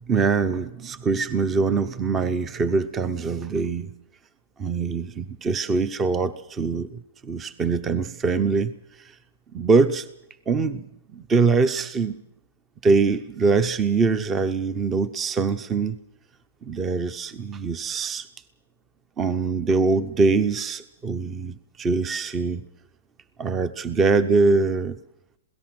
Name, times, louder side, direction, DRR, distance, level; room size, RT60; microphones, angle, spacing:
voice 1, 0.1-3.9 4.6-8.7 9.5-10.1 10.5-12.2 12.8-16.0 16.6-18.3 19.2-22.6 23.4-25.0, right 4 dB, 15° right, 0.8 m, -23 dB
27.0 x 17.5 x 6.1 m
hypercardioid pair, 155°, 0 cm